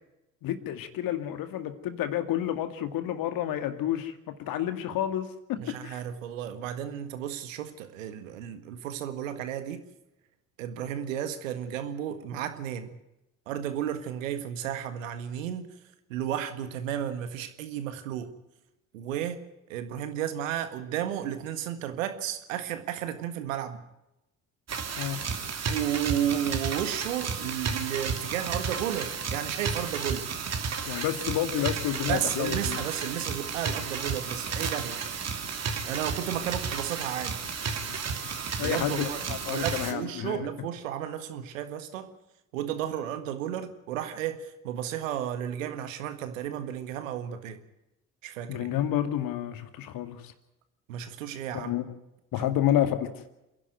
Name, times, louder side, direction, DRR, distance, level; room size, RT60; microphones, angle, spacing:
voice 1, 0.4-6.0 25.0-25.2 30.9-32.9 38.0-38.3 38.6-40.5 48.5-50.3 51.5-51.8 52.3-53.2, left 11 dB, 60° left, 9 dB, 2.2 m, -30 dB
voice 2, 5.6-9.9 10.6-13.0 13.5-15.7 16.1-18.3 18.9-19.4 19.7-23.8 25.7-30.3 32.1-35.0 35.9-37.4 38.6-42.1 42.5-47.6 48.2-48.7 50.9-51.7 52.3-52.5, right 10 dB, 80° right, 10 dB, 1.7 m, -33 dB
sound 1, 24.7-39.9, right 5 dB, 40° right, 2.8 m, -33 dB
28.0 x 11.0 x 9.2 m, 0.92 s
hypercardioid pair, 55°, 38 cm